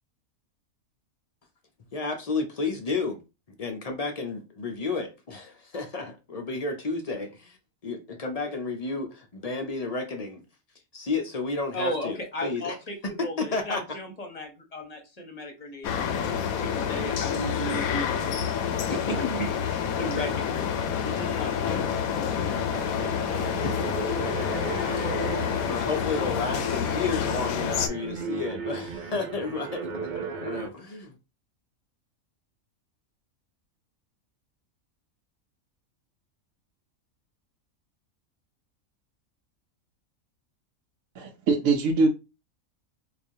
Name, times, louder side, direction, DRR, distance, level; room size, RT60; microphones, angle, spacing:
voice 1, 1.9-3.2 3.6-7.6 7.8-10.4 10.9-12.8 13.2-13.8 25.7-29.9 30.1-31.2, left 3 dB, 50° left, 0.4 m, -32 dB
voice 2, 11.7-20.7 21.0-22.8 23.6-23.7, left 1 dB, 35° left, 0.9 m, -35 dB
sound 1, 15.8-27.9, left 8 dB, 90° left, 1.0 m, -28 dB
sound 2, 22.7-30.7, right 5 dB, 90° right, 0.4 m, -36 dB
voice 3, 41.2-42.1, right 3 dB, 70° right, 1.0 m, -22 dB
4.7 x 2.4 x 2.7 m
omnidirectional pair, 1.4 m